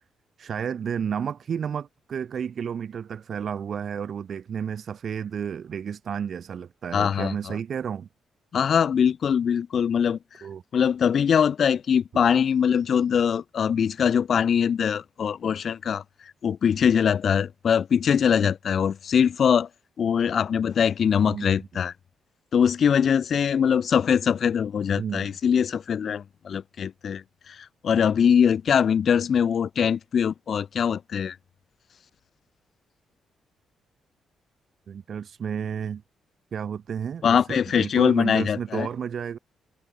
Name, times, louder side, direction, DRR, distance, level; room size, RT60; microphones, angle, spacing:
voice 1, 0.4-8.1 10.4-10.6 21.3-21.7 25.0-25.3 34.9-36.0 36.5-39.4, right 7 dB, 60° right, 0.5 m, -32 dB
voice 2, 6.9-7.5 8.5-10.2 10.7-16.0 16.4-19.7 20.0-21.9 22.5-27.2 27.8-31.4 37.2-38.9, left 7 dB, 60° left, 0.3 m, -22 dB
cardioid pair, 75°, 0 cm